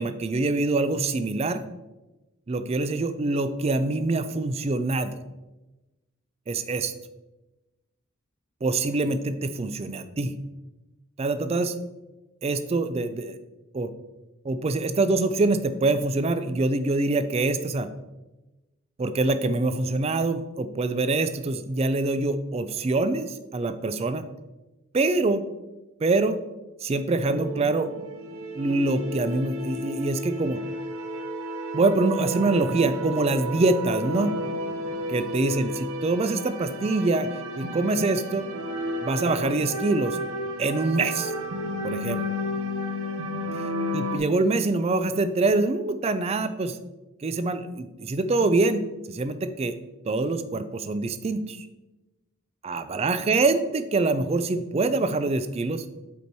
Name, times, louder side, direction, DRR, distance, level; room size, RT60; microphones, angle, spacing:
voice 1, 0.0-1.6 2.5-5.1 6.5-6.9 8.6-10.3 11.2-11.8 12.4-13.4 13.7-13.9 14.4-17.9 19.0-24.3 24.9-25.5 26.0-26.4 26.8-27.9 28.5-30.6 31.7-34.3 35.1-37.3 37.6-38.5 39.0-40.2 40.6-41.3 41.8-42.2 43.9-46.8 47.2-48.8 49.1-49.7 50.1-51.7 52.6-55.8, right 3 dB, 30° right, 11 dB, 0.3 m, -25 dB
sound 1, 27.3-44.2, equal, 75° right, 0.8 m, -32 dB
5.4 x 4.4 x 4.7 m, 1.1 s
head